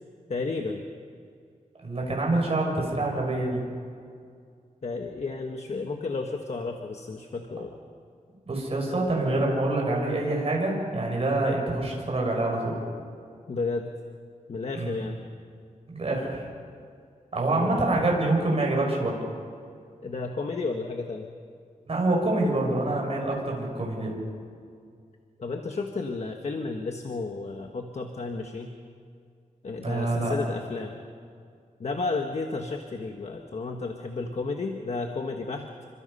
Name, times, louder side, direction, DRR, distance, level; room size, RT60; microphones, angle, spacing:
voice 1, 0.3-0.9 4.8-7.8 13.5-13.9 14.5-15.2 17.5-17.9 20.0-21.3 25.4-28.7 29.6-31.0 31.8-35.7, left 3 dB, 50° left, 3 dB, 1.4 m, -32 dB
voice 2, 1.8-3.6 8.5-12.8 14.7-15.0 15.9-16.4 17.3-19.2 21.9-24.2 29.8-30.3, right 2 dB, 45° right, -1 dB, 6.2 m, -26 dB
28.5 x 25.0 x 5.6 m, 2.3 s
wide cardioid pair, 160°, 14 cm